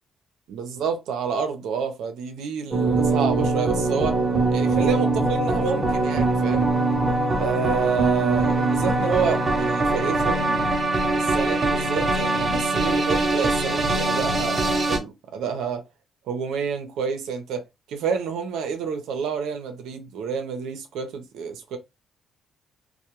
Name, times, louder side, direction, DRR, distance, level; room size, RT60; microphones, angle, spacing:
voice 1, 0.5-4.2 4.5-6.7 7.3-10.8 11.1-15.8 16.3-21.8, right 6 dB, 85° right, 0.7 m, -29 dB
sound 1, 2.7-15.0, right 2 dB, 30° right, 0.8 m, -22 dB
2.2 x 2.2 x 2.9 m
cardioid pair, 90°, 0 cm